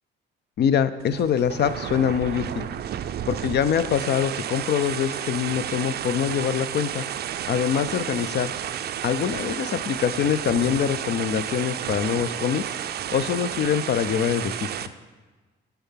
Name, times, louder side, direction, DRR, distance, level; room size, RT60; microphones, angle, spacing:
voice 1, 0.6-2.7 3.3-7.0 7.5-8.5 9.0-12.6 13.1-14.7, left 8 dB, 55° left, 13 dB, 0.5 m, -24 dB
sound 1, 1.0-14.9, right 10 dB, 55° right, 0.4 m, -32 dB
6.9 x 4.6 x 5.7 m, 1.3 s
cardioid pair, 90°, 20 cm